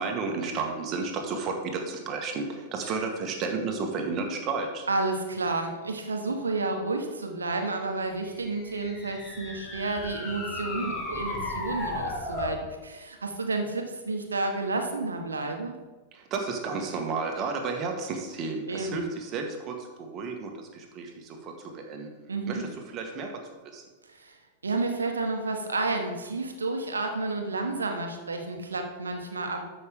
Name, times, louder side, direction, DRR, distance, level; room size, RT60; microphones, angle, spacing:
voice 1, 0.0-4.9 16.1-23.3 23.6-23.8, right 4 dB, 35° right, 3 dB, 1.7 m, -32 dB
voice 2, 4.9-15.7 18.7-19.0 22.3-22.7 24.2-24.4 24.6-29.6, right 3 dB, 80° right, 4 dB, 1.3 m, -31 dB
sound 1, 8.3-12.6, left 2 dB, 20° left, 1.5 m, -35 dB
13.0 x 5.5 x 3.7 m, 1.2 s
figure-of-eight pair, 95°, 0 cm